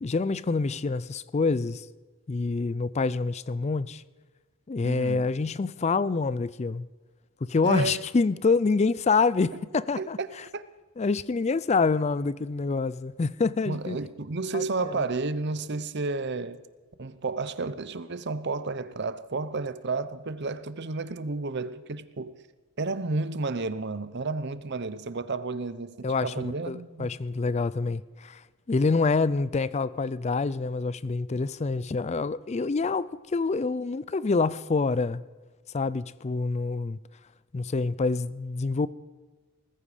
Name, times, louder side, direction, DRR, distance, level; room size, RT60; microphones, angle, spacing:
voice 1, 0.0-1.9 2.3-4.0 4.7-6.9 7.4-10.4 11.0-14.0 14.5-14.6 14.9-15.0 26.0-28.4 28.7-35.2 35.7-37.0 37.5-38.9, left 4 dB, 30° left, 0.4 m, -26 dB
voice 2, 4.8-5.3 7.6-8.0 10.0-10.3 10.5-10.6 13.7-16.6 17.0-22.3 22.8-27.1, right 3 dB, 50° right, 0.7 m, -31 dB
19.5 x 14.5 x 5.0 m
head